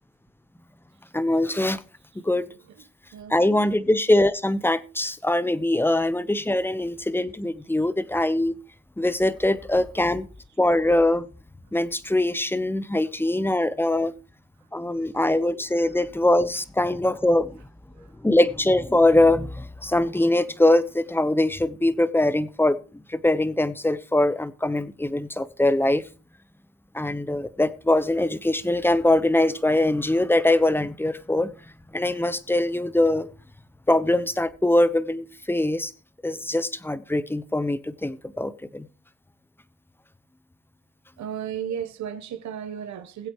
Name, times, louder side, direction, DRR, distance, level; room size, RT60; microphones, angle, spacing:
voice 1, 1.1-1.8 2.1-2.5 3.3-8.5 9.0-10.3 10.6-11.2 11.7-14.1 14.7-17.6 18.0-26.0 26.9-31.5 31.9-33.3 33.9-35.9 36.2-38.9, left 1 dB, 5° left, 0.9 m, -22 dB
voice 2, 3.1-3.7 18.0-18.1 41.2-43.3, right 9 dB, 70° right, 1.1 m, -34 dB
21.0 x 8.1 x 3.1 m
cardioid pair, 90°, 30 cm